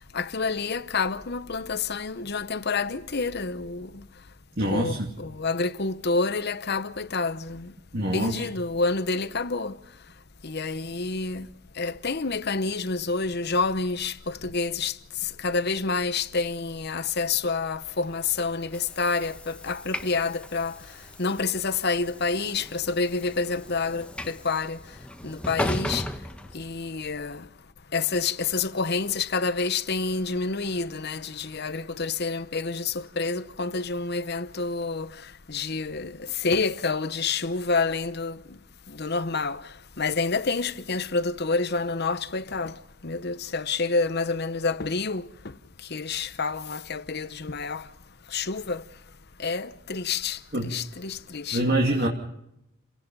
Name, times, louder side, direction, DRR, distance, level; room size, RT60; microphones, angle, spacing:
voice 1, 0.1-3.9 4.7-7.7 8.1-9.7 10.4-11.5 11.8-14.9 15.4-20.8 21.2-24.8 25.2-26.0 26.5-27.4 27.9-35.1 35.5-38.4 39.0-39.6 40.0-42.7 43.0-45.3 45.9-47.8 48.3-48.8 49.4-50.4 50.6-51.6, left 4 dB, 45° left, 0.9 m, -28 dB
voice 2, 4.6-5.1 7.9-8.5 50.5-50.7 51.5-52.1, right 1 dB, 45° right, 2.6 m, -25 dB
Train / Sliding door, 17.9-27.2, left 1 dB, 5° left, 1.1 m, -37 dB
29.5 x 17.5 x 5.4 m
head